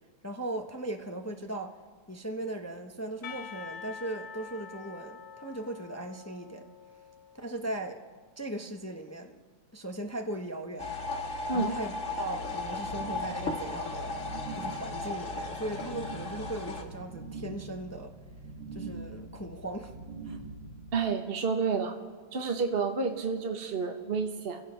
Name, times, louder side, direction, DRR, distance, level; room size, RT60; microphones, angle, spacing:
voice 1, 0.2-1.8 2.1-6.7 7.3-8.0 8.4-9.4 9.7-10.9 11.5-14.3 14.5-18.1 18.7-19.9 20.2-20.4, right 1 dB, 15° left, 4 dB, 0.7 m, -38 dB
Percussion, 3.2-8.1, left 7 dB, 85° left, 1.7 m, -46 dB
sound 1, 10.8-16.8, left 3 dB, 45° left, 2.0 m, -36 dB
sound 2, 12.4-21.0, right 3 dB, 65° right, 3.2 m, -44 dB
voice 2, 20.9-21.9 22.3-24.6, right 5 dB, 35° right, 3 dB, 1.2 m, -30 dB
29.0 x 16.5 x 5.6 m, 1.5 s
omnidirectional pair, 1.9 m